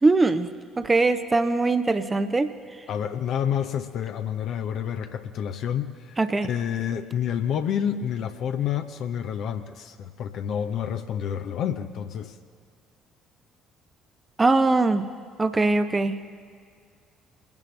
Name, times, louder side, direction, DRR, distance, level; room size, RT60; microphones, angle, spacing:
voice 1, 0.0-0.5 0.8-2.5 6.2-6.5 14.4-15.1 15.4-16.2, right 3 dB, 25° right, 11 dB, 0.6 m, -21 dB
voice 2, 2.9-12.4, left 9 dB, 55° left, 6 dB, 0.7 m, -29 dB
22.5 x 10.5 x 3.3 m, 2.1 s
figure-of-eight pair, 45°, 0 cm